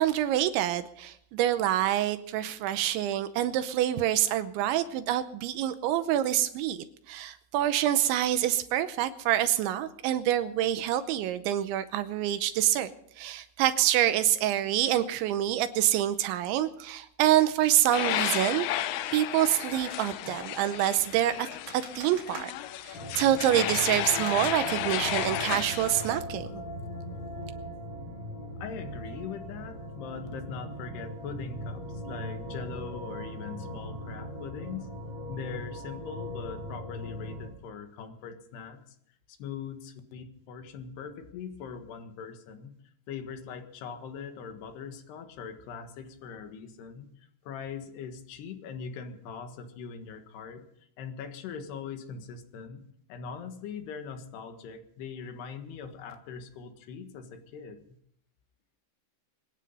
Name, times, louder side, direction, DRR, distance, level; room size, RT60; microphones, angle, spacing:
voice 1, 0.0-12.9 13.2-18.7 19.1-21.5 21.7-22.5 22.8-26.6, right 12 dB, 80° right, 11 dB, 3.0 m, -26 dB
sound 1, 17.2-25.0, right 3 dB, 35° right, 3.3 m, -50 dB
sound 2, 17.9-26.2, left 13 dB, 85° left, 2.3 m, -33 dB
sound 3, 22.9-37.5, equal, 35° left, 5.6 m, -39 dB
voice 2, 28.6-34.9 35.3-39.0 39.3-42.7 43.1-50.7 51.0-52.8 53.1-58.0, left 6 dB, 65° left, 6 dB, 3.5 m, -41 dB
24.5 x 9.9 x 5.4 m, 0.70 s
omnidirectional pair, 5.5 m